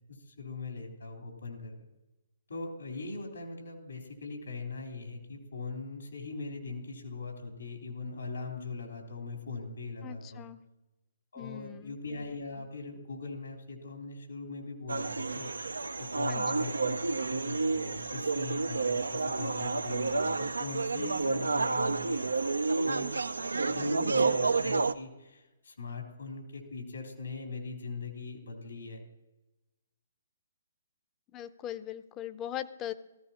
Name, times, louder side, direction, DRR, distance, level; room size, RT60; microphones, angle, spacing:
voice 1, 0.1-1.7 2.5-10.5 11.3-15.5 16.0-22.3 22.9-23.1 23.4-29.0, left 3 dB, 80° left, 2 dB, 3.6 m, -41 dB
voice 2, 10.0-10.6 11.4-12.0 16.3-16.5 31.3-32.9, left 11 dB, 25° left, 12 dB, 0.6 m, -40 dB
sound 1, 14.9-24.9, right 3 dB, 85° right, 0.5 m, -30 dB
17.0 x 14.5 x 2.9 m, 1.0 s
figure-of-eight pair, 130°, 0 cm